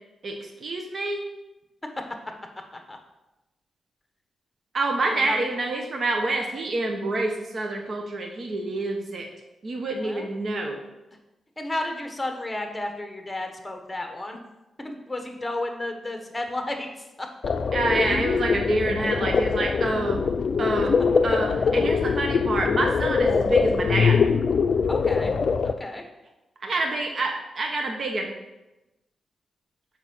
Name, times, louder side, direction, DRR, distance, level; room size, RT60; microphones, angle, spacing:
voice 1, 0.2-1.3 4.7-9.3 9.6-10.8 17.7-20.2 20.6-20.9 21.2-24.2 26.6-28.3, right 2 dB, 55° right, 2 dB, 1.0 m, -27 dB
voice 2, 5.0-5.4 10.0-10.3 11.6-14.4 14.8-17.3 24.9-25.3 25.6-26.0, left 2 dB, 15° left, 4 dB, 1.3 m, -32 dB
sound 1, 17.4-25.7, left 5 dB, 55° left, 0.4 m, -23 dB
7.2 x 5.4 x 5.5 m, 0.99 s
cardioid pair, 100°, 0 cm